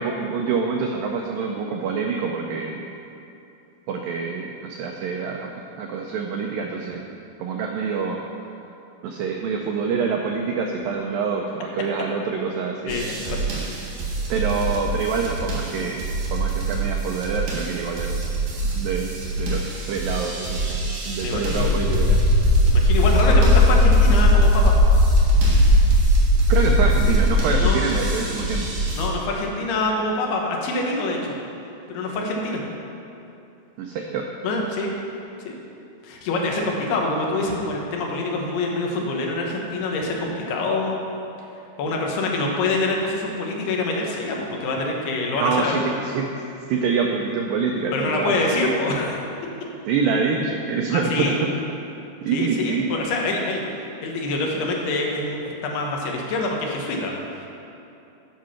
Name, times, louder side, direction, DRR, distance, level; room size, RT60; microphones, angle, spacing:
voice 1, 0.0-2.9 3.9-5.5 5.8-7.0 7.4-8.2 9.0-13.0 14.3-18.2 18.8-20.7 21.1-22.3 26.5-28.8 33.8-34.3 45.3-46.3 46.7-48.4 49.9-51.5 52.3-52.9, right 5 dB, 85° right, 1 dB, 2.0 m, -26 dB
voice 2, 12.9-13.4 21.2-21.8 22.6-24.7 27.6-27.8 28.9-31.3 31.9-32.6 34.4-34.9 35.5-35.6 36.0-41.0 41.8-45.8 47.9-49.2 50.9-51.4 52.3-53.7 54.0-57.1, left 2 dB, 75° left, -1 dB, 3.1 m, -25 dB
sound 1, 12.9-29.1, right 3 dB, 60° right, 2.6 m, -28 dB
sound 2, 21.5-27.7, left 1 dB, 60° left, 2.6 m, -17 dB
10.5 x 6.1 x 5.7 m, 2.7 s
omnidirectional pair, 4.7 m